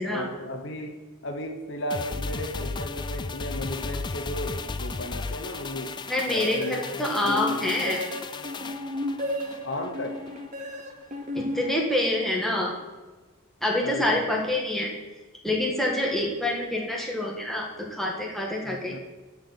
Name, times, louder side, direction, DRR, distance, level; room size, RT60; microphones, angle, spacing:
voice 1, 0.0-6.0 6.3-7.7 9.6-10.2 13.8-14.3 18.6-19.0, left 1 dB, 55° left, 6 dB, 0.9 m, -35 dB
sound 1, 1.9-10.5 10.8-10.9, left 4 dB, 20° left, 0.3 m, -35 dB
voice 2, 6.1-8.0 11.3-12.8 13.6-14.9 15.4-19.0, left 1 dB, ahead, -1 dB, 1.6 m, -26 dB
sound 2, 6.5-12.4, left 1 dB, 35° right, 0.9 m, -34 dB
12.0 x 4.7 x 7.8 m, 1.3 s
head